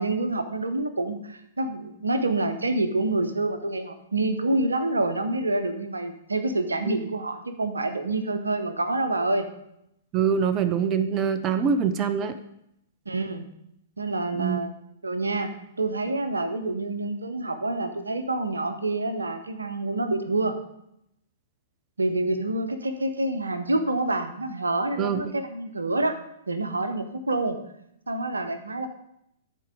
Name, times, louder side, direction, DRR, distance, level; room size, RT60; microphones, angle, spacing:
voice 1, 0.0-9.5 13.1-13.5 14.0-14.7 15.0-20.6 22.0-26.2 26.5-27.6 28.1-28.9, right 2 dB, 90° right, 9 dB, 0.8 m, -27 dB
voice 2, 10.1-12.3 14.4-14.6 25.0-25.2, right 7 dB, 30° right, 11 dB, 0.6 m, -24 dB
11.0 x 4.6 x 5.1 m, 0.78 s
hypercardioid pair, 115°, 0 cm